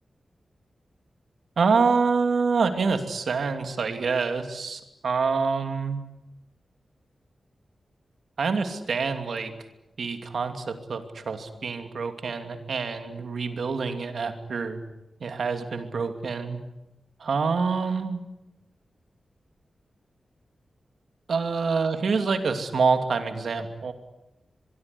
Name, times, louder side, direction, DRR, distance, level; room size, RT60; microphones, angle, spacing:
voice 1, 1.6-6.0 8.4-9.5 10.0-14.8 15.2-16.6 17.2-18.2 21.3-23.9, right 5 dB, 75° right, 7 dB, 2.6 m, -26 dB
24.5 x 22.5 x 9.8 m, 0.95 s
wide cardioid pair, 165°, 0 cm